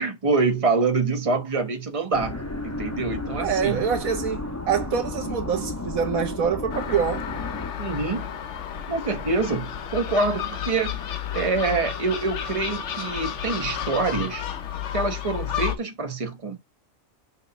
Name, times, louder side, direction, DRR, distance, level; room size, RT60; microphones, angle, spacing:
voice 1, 0.0-3.8 7.8-8.3 8.9-11.0 11.3-14.4 14.9-16.6, right 3 dB, 25° right, 1.2 m, -26 dB
sound 1, 2.1-7.7, left 2 dB, 15° left, 0.8 m, -32 dB
voice 2, 3.4-7.3, right 7 dB, 85° right, 1.6 m, -25 dB
Gull seagull, 6.7-15.8, left 9 dB, 60° left, 1.1 m, -32 dB
6.3 x 2.9 x 5.5 m
omnidirectional pair, 1.4 m